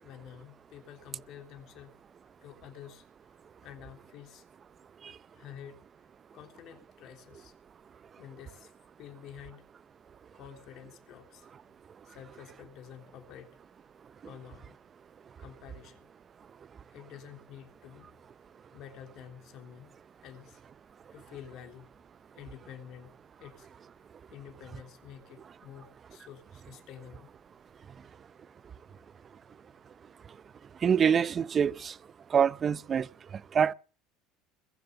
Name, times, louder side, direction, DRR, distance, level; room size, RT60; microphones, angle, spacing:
voice 1, 0.0-2.0 2.4-3.3 3.6-4.4 5.0-7.5 8.2-8.7 9.0-9.6 10.3-11.5 12.0-13.6 14.2-14.8 15.4-16.1 16.9-18.1 18.7-19.9 20.2-20.6 21.1-22.0 22.3-23.7 24.3-27.3, left 9 dB, 55° left, 3.2 m, -49 dB
voice 2, 30.8-31.9 32.3-33.1 33.5-33.7, right 7 dB, 35° right, 0.6 m, -25 dB
21.5 x 7.3 x 6.9 m
supercardioid pair, 105°, 0 cm